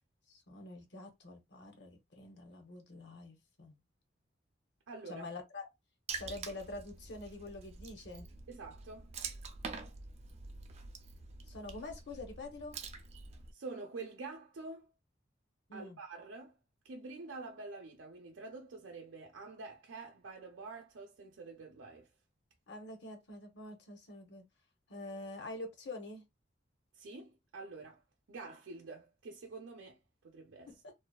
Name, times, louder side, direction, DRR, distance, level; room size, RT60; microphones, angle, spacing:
voice 1, 0.3-3.8 5.1-5.6 6.1-8.3 11.5-12.8 15.7-16.0 22.7-24.4 24.9-26.2 30.7-30.9, left 2 dB, 60° left, 0.7 m, -46 dB
voice 2, 4.9-5.2 8.5-9.1 13.5-14.9 15.7-16.6 16.8-22.1 27.0-28.0 28.3-30.0 30.2-30.7, right 3 dB, 85° right, 0.5 m, -47 dB
Water / Splash splatter, 6.1-13.5, right 5 dB, 35° right, 0.3 m, -46 dB
2.6 x 2.2 x 2.2 m
head